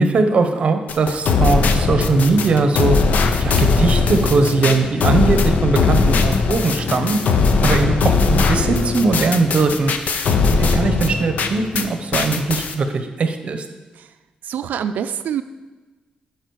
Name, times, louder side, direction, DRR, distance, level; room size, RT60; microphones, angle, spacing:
voice 1, 0.0-3.0 3.4-7.2 7.6-9.9 10.5-13.6, right 3 dB, 45° right, 7 dB, 0.8 m, -19 dB
sound 1, 0.9-11.9 12.1-12.7, left 4 dB, 65° left, 0.7 m, -19 dB
voice 2, 14.4-15.4, right 8 dB, 90° right, 11 dB, 0.4 m, -25 dB
11.5 x 4.8 x 4.7 m, 1.2 s
wide cardioid pair, 150°, 3 cm